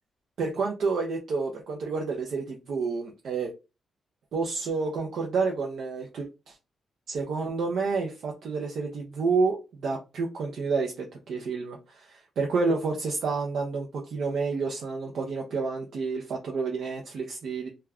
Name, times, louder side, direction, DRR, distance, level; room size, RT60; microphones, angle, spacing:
voice 1, 0.4-3.5 4.3-6.6 7.1-17.7, right 4 dB, 70° right, 0.5 m, -29 dB
2.3 x 2.1 x 3.4 m
cardioid pair, 100°, 0 cm